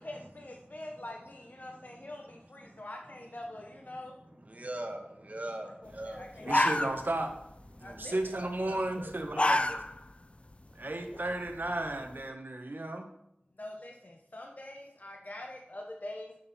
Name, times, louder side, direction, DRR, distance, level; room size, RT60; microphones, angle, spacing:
voice 1, 0.0-4.2 5.6-6.9 7.8-8.3 13.6-16.4, left 1 dB, 50° left, 1 dB, 1.0 m, -45 dB
voice 2, 4.4-6.5 7.8-7.9 8.3-9.8, right 1 dB, 45° right, 3 dB, 1.5 m, -42 dB
sound 1, 6.0-6.1 6.4-7.4 7.7-8.0 9.0-10.1 10.5-10.6 11.1-12.1, left 1 dB, 35° left, 0.5 m, -28 dB
voice 3, 6.4-7.3 7.8-9.7 10.7-13.1, right 1 dB, 60° right, 4 dB, 1.2 m, -34 dB
8.8 x 6.6 x 4.3 m, 0.77 s
wide cardioid pair, 45°, 4 cm